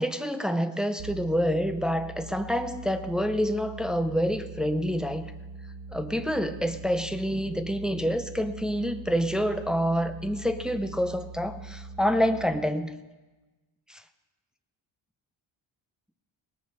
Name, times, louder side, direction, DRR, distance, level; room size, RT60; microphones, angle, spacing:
voice 1, 0.0-5.3 5.9-13.0 13.9-14.0, equal, ahead, 8 dB, 0.5 m, -27 dB
sound 1, 1.0-12.4, right 3 dB, 80° right, 1.6 m, -42 dB
18.5 x 9.8 x 6.7 m, 1.2 s
cardioid pair, 155°, 47 cm